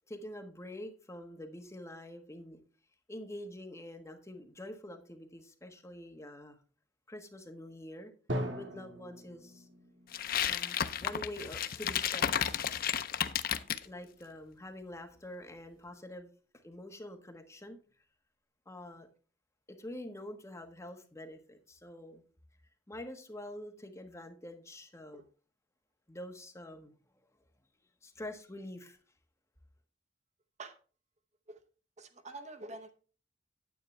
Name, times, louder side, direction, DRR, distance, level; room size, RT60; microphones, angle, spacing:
voice 1, 0.0-2.6 3.1-6.6 7.1-8.1 8.6-9.7 10.5-12.6 13.9-16.3 16.6-17.8 18.7-19.1 19.7-22.2 22.9-25.3 26.1-26.9 28.0-29.0, left 1 dB, 15° left, 4 dB, 1.3 m, -46 dB
Drum, 8.3-12.0, equal, 75° right, 1.6 m, -41 dB
sound 1, 10.1-13.8, left 9 dB, 50° left, 0.6 m, -32 dB
voice 2, 32.0-32.9, right 2 dB, 40° right, 9 dB, 0.8 m, -46 dB
9.6 x 8.7 x 3.3 m, 0.38 s
head